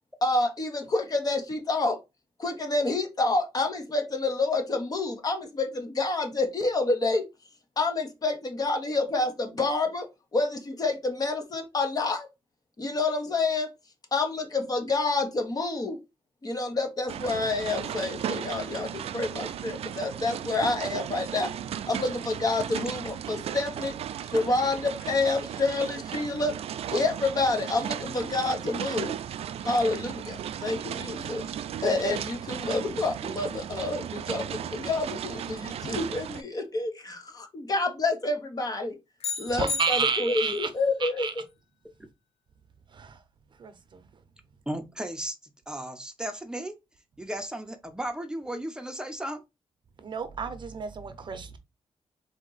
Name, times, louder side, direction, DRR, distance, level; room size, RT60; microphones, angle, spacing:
voice 1, 0.2-2.0 2.4-7.3 7.8-12.3 12.8-13.7 14.1-16.0 16.4-21.5 21.8-23.9 24.3-26.6 26.9-29.2 29.6-31.5 31.8-39.0 39.4-41.4, left 3 dB, 35° left, 1.1 m, -28 dB
sound 1, 17.1-36.4, right 9 dB, 75° right, 0.4 m, -36 dB
sound 2, 39.2-40.6, left 4 dB, 75° left, 0.7 m, -34 dB
voice 2, 39.5-40.7 41.0-41.3 42.9-43.2 43.6-44.1 50.0-51.6, right 5 dB, 50° right, 0.7 m, -31 dB
voice 3, 44.7-45.3 45.7-46.8 47.2-49.4, right 1 dB, 5° right, 0.8 m, -35 dB
4.2 x 2.9 x 3.9 m
cardioid pair, 110°, 10 cm